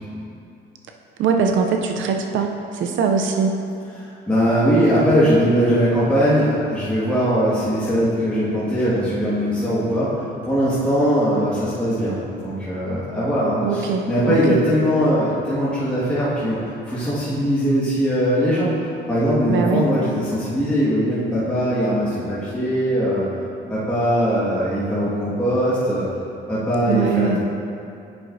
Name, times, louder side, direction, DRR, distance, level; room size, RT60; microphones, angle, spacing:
voice 1, 1.2-3.6 13.6-14.6 19.5-19.9 26.9-27.4, right 6 dB, 75° right, 3 dB, 0.5 m, -21 dB
voice 2, 4.0-18.7 19.1-23.2 23.7-26.0 26.5-27.4, equal, 5° left, -11 dB, 1.7 m, -20 dB
9.3 x 5.9 x 2.6 m, 2.5 s
cardioid pair, 90°, 20 cm